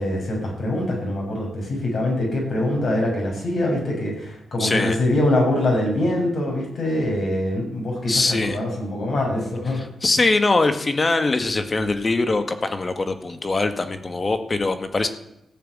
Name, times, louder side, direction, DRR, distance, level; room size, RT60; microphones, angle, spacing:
voice 1, 0.0-9.8, left 1 dB, 65° left, -1 dB, 6.9 m, -24 dB
voice 2, 4.6-5.0 8.1-8.6 9.7-15.1, left 3 dB, 40° left, 8 dB, 1.9 m, -22 dB
15.0 x 6.9 x 9.4 m, 0.86 s
supercardioid pair, 40°, 0 cm